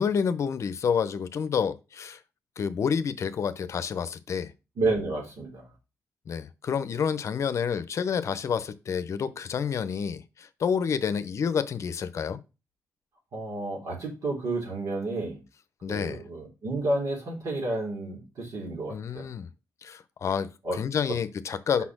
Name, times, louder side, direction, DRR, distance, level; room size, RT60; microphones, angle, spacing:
voice 1, 0.0-2.2 2.6-4.5 6.3-12.4 15.8-16.2 18.9-19.5 19.8-21.8, left 7 dB, 60° left, 0.7 m, -29 dB
voice 2, 4.8-5.7 13.3-15.4 15.9-19.3 20.6-20.8 21.8-21.9, right 2 dB, 70° right, 3.3 m, -31 dB
5.7 x 4.3 x 5.9 m
cardioid pair, 95°, 6 cm